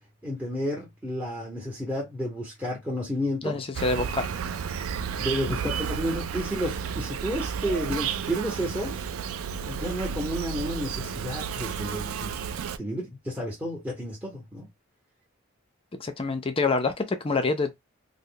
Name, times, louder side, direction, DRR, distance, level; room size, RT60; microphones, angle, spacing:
voice 1, 0.2-3.6 5.2-8.9 9.6-12.3 12.8-14.7, equal, 5° right, 0.8 m, -31 dB
voice 2, 3.4-4.3 16.0-17.8, left 3 dB, 25° left, 0.4 m, -26 dB
Insect, 3.7-12.8, right 7 dB, 75° right, 0.4 m, -32 dB
3.2 x 2.0 x 3.7 m
head